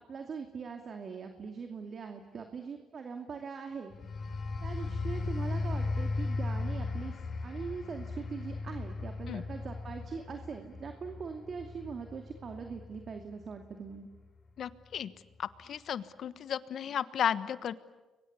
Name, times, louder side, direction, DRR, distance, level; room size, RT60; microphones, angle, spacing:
voice 1, 0.1-3.9 4.6-14.1, right 5 dB, 50° right, 5 dB, 2.5 m, -42 dB
sound 1, 3.9-14.3 14.7-15.0, left 3 dB, 45° left, 4.3 m, -37 dB
voice 2, 14.6-15.1 15.4-17.7, left 9 dB, 65° left, 15 dB, 1.2 m, -34 dB
30.0 x 23.0 x 8.4 m, 1.2 s
cardioid pair, 90°, 0 cm